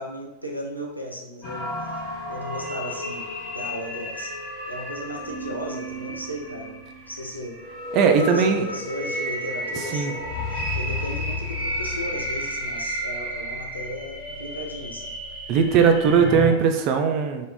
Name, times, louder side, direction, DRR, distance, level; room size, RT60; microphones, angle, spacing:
voice 1, 0.0-1.7 2.3-3.3 3.5-4.3 4.7-7.6 8.1-15.1, equal, 90° left, -2 dB, 0.4 m, -35 dB
sound 1, 1.4-16.5, left 1 dB, 45° left, 1.2 m, -32 dB
voice 2, 7.9-8.7 9.9-10.1 15.5-17.5, right 6 dB, 40° right, 5 dB, 0.3 m, -19 dB
2.2 x 2.0 x 3.4 m, 1.0 s
figure-of-eight pair, 90°, 0 cm